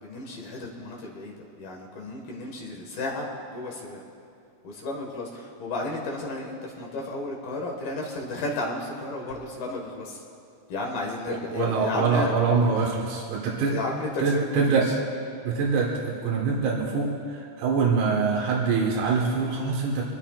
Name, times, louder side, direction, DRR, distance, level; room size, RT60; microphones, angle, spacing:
voice 1, 0.0-4.0 4.6-10.2 10.7-12.3 13.7-14.8, left 2 dB, 60° left, -1 dB, 2.9 m, -33 dB
voice 2, 11.3-13.8 14.2-14.9 15.4-20.0, right 4 dB, 85° right, -3 dB, 4.2 m, -24 dB
25.0 x 20.0 x 2.5 m, 2.6 s
omnidirectional pair, 5.9 m